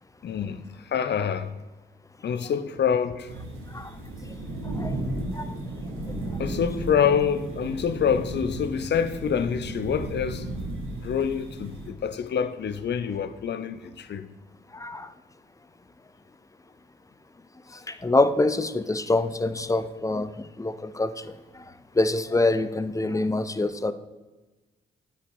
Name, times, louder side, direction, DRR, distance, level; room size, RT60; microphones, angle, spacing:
voice 1, 0.2-1.5 2.2-3.4 6.4-10.5 11.0-14.3, left 7 dB, 55° left, 0.7 m, -26 dB
sound 1, 3.3-11.9, right 2 dB, 80° right, 1.5 m, -34 dB
voice 2, 14.7-15.1 17.9-21.3 22.0-23.9, left 2 dB, 15° left, 0.6 m, -25 dB
8.4 x 5.0 x 5.3 m
supercardioid pair, 45°, 21 cm